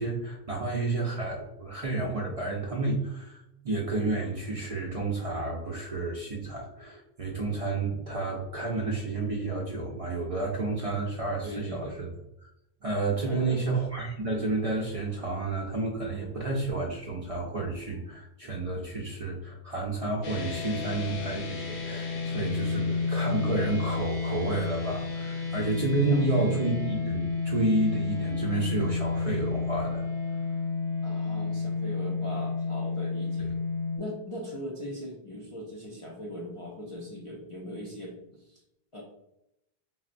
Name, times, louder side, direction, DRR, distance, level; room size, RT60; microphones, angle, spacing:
voice 1, 0.0-12.1 12.4-12.5 12.8-30.1, right 2 dB, 55° right, -2 dB, 0.4 m, -30 dB
voice 2, 11.4-12.0 13.3-13.6 26.1-26.5 31.0-33.5 34.0-38.6 38.9-39.0, left 1 dB, 55° left, -3 dB, 0.3 m, -40 dB
sound 1, 20.2-34.0, left 4 dB, 90° left, 0.9 m, -31 dB
3.7 x 2.0 x 2.5 m, 0.84 s
omnidirectional pair, 1.1 m